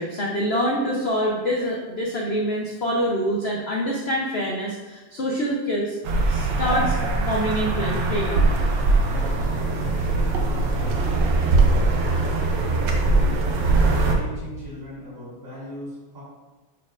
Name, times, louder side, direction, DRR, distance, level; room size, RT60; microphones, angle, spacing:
voice 1, 0.0-6.0 6.3-7.0 7.3-8.6, equal, 55° left, -3 dB, 0.7 m, -25 dB
sound 1, 6.0-14.2, right 3 dB, 90° right, 1.5 m, -21 dB
voice 2, 8.9-11.7 11.9-13.3 13.8-16.2, left 1 dB, 45° right, -7 dB, 2.7 m, -39 dB
9.8 x 4.4 x 2.4 m, 1.2 s
omnidirectional pair, 1.9 m